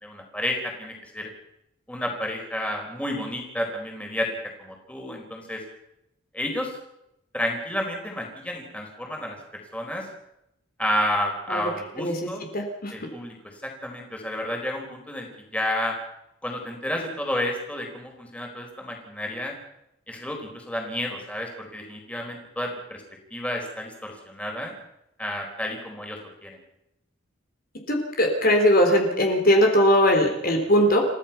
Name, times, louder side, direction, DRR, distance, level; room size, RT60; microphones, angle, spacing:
voice 1, 0.0-1.3 1.9-4.3 4.6-5.6 6.3-6.8 7.3-9.4 9.7-10.1 10.8-12.5 12.9-13.3 13.6-16.0 16.4-19.5 20.1-23.0 23.3-24.8 25.2-26.6, left 1 dB, 5° left, 1 dB, 4.4 m, -31 dB
voice 2, 12.5-12.9 27.9-31.0, equal, 45° left, 2 dB, 3.8 m, -20 dB
30.0 x 15.5 x 5.9 m, 0.82 s
head